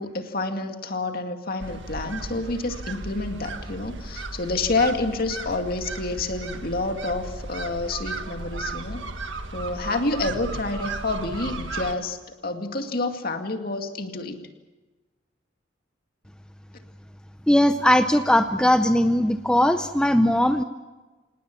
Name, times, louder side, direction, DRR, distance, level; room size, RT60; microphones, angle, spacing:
voice 1, 0.0-9.0 9.5-14.4, left 2 dB, 50° left, 5 dB, 2.2 m, -28 dB
sound 1, 1.6-12.0, right 3 dB, 70° right, 1.8 m, -35 dB
voice 2, 17.5-20.6, left 1 dB, 5° left, 8 dB, 0.6 m, -19 dB
26.5 x 19.5 x 7.0 m, 1.2 s
head